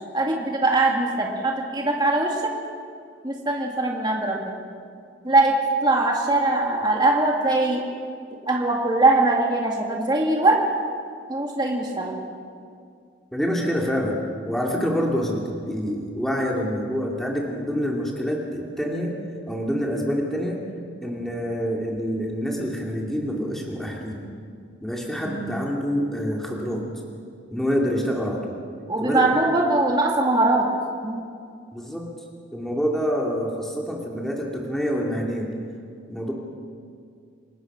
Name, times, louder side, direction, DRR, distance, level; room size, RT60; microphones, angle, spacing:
voice 1, 0.1-2.4 3.2-4.5 5.2-7.8 8.4-10.6 11.3-12.2 25.3-25.6 28.9-30.7 31.0-31.3, right 2 dB, 20° right, -1 dB, 2.1 m, -21 dB
voice 2, 13.3-19.2 19.5-20.6 21.0-24.3 24.8-26.9 27.5-28.6 29.0-29.3 31.7-32.1 32.5-35.5 36.1-36.3, equal, ahead, -2 dB, 2.5 m, -26 dB
28.5 x 19.5 x 6.1 m, 2.3 s
head